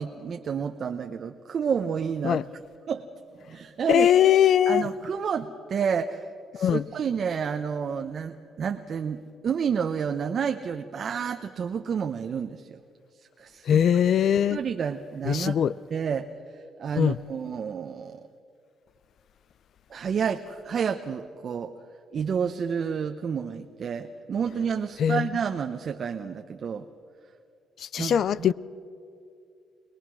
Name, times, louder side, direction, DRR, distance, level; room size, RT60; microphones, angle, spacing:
voice 1, 0.0-2.4 2.9-3.0 3.5-4.1 4.7-6.3 6.5-12.8 13.4-13.8 14.5-15.6 15.9-18.3 19.9-21.7 22.1-26.9 28.0-28.5, right 7 dB, 55° right, 0.8 m, -30 dB
voice 2, 3.9-4.9 6.6-6.8 13.7-14.6 15.3-15.7 17.0-17.2 25.0-25.3 27.9-28.5, left 9 dB, 65° left, 0.5 m, -21 dB
23.0 x 19.5 x 6.3 m
cardioid pair, 90°, 0 cm